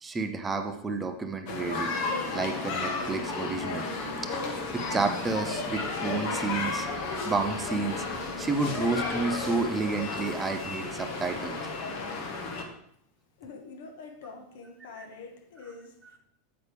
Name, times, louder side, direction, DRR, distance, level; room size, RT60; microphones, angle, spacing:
voice 1, 0.0-3.9 4.3-4.4 4.7-8.1 8.4-11.6 15.0-15.1, right 3 dB, 10° right, 0.6 m, -31 dB
sound 1, 1.5-12.6, left 3 dB, 45° left, 1.4 m, -33 dB
voice 2, 13.4-16.2, left 4 dB, 75° left, 1.5 m, -45 dB
8.8 x 8.3 x 3.4 m
supercardioid pair, 170°, 0 cm